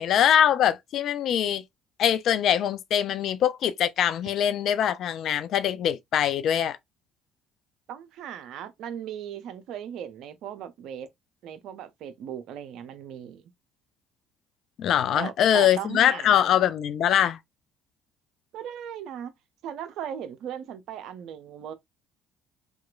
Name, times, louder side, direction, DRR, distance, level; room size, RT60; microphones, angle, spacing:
voice 1, 0.0-1.6 2.0-6.8 14.8-17.4, left 10 dB, 55° left, 0.3 m, -23 dB
voice 2, 7.9-11.1 11.4-13.4 15.1-16.5 18.5-19.3 19.6-21.7, right 9 dB, 60° right, 0.5 m, -37 dB
2.8 x 2.4 x 2.3 m
hypercardioid pair, 55°, 0 cm